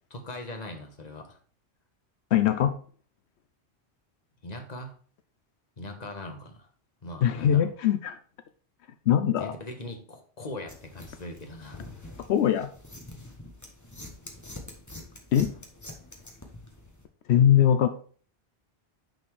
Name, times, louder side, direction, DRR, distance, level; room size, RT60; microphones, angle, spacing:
voice 1, 0.1-1.4 4.4-4.9 5.8-6.7 7.0-7.7 9.4-12.1, left 1 dB, 40° left, 4 dB, 1.5 m, -40 dB
voice 2, 2.3-2.8 7.2-8.2 9.1-9.5 12.3-12.7 15.3-15.5 17.3-17.9, left 10 dB, 80° left, 10 dB, 0.9 m, -21 dB
sound 1, 10.7-17.1, left 1 dB, 15° left, 1.2 m, -45 dB
9.1 x 4.3 x 4.7 m, 0.43 s
omnidirectional pair, 1.1 m